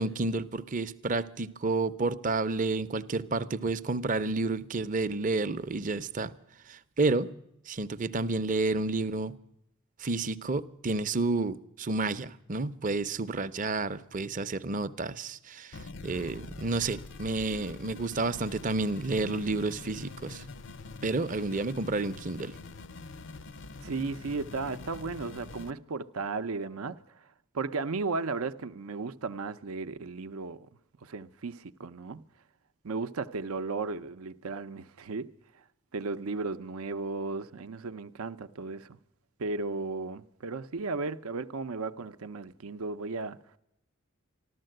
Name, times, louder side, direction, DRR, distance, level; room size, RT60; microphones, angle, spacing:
voice 1, 0.0-6.3 6.7-7.3 7.7-9.3 10.0-20.5 21.0-22.6, right 3 dB, 35° right, 0.6 m, -30 dB
sound 1, 15.7-25.7, left 3 dB, 55° left, 0.5 m, -45 dB
voice 2, 23.8-27.0 27.5-30.7 31.0-32.2 32.8-35.3 35.9-38.9 39.4-43.4, right 3 dB, 80° right, 0.6 m, -35 dB
14.5 x 12.5 x 7.7 m
head